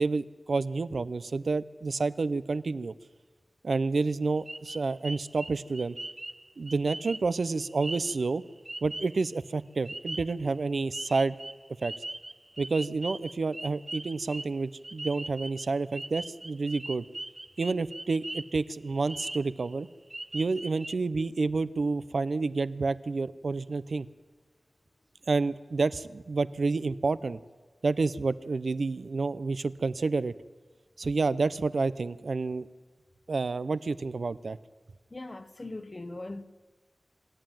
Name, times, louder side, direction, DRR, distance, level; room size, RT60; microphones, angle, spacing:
voice 1, 0.0-2.9 3.6-6.0 6.6-8.4 8.8-11.4 11.8-11.9 12.6-17.0 17.6-19.9 20.3-24.1 25.3-27.4 27.8-30.3 31.0-32.7 33.3-34.6, right 3 dB, 80° right, 0.6 m, -29 dB
sound 1, 4.5-9.4 9.8-10.7 10.9-18.6 18.9-19.7 20.1-20.9, right 1 dB, 30° right, 0.5 m, -41 dB
voice 2, 35.1-36.4, left 2 dB, 45° left, 1.0 m, -40 dB
26.5 x 11.0 x 9.0 m
wide cardioid pair, 50°, 0 cm